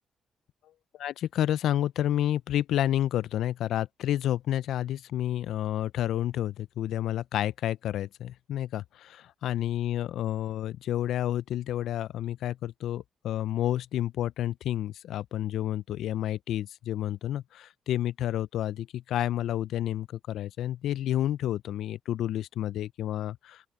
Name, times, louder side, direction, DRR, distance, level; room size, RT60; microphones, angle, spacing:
voice 1, 0.9-23.7, left 12 dB, 75° left, 0.4 m, -30 dB
open air
cardioid pair, 90°, 0 cm